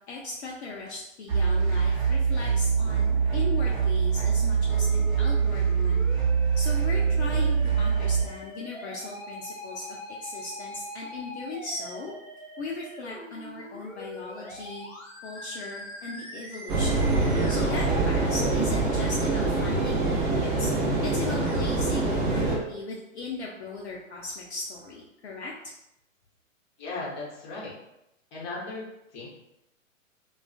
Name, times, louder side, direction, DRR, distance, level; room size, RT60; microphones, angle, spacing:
voice 1, 0.1-6.0 6.6-12.1 12.6-14.9 15.2-17.1 17.5-20.7 21.0-25.5, left 3 dB, 55° left, -3 dB, 0.5 m, -38 dB
sound 1, 1.3-8.2, right 6 dB, 60° right, 0.9 m, -24 dB
Musical instrument, 4.7-22.7, left 1 dB, 90° left, 0.7 m, -43 dB
sound 2, 16.7-22.6, right 2 dB, 35° right, 0.7 m, -25 dB
voice 2, 26.8-27.7 28.3-28.8 29.1-29.3, left 3 dB, 25° left, -5 dB, 0.8 m, -36 dB
2.4 x 2.3 x 2.3 m, 0.86 s
figure-of-eight pair, 110°, 39 cm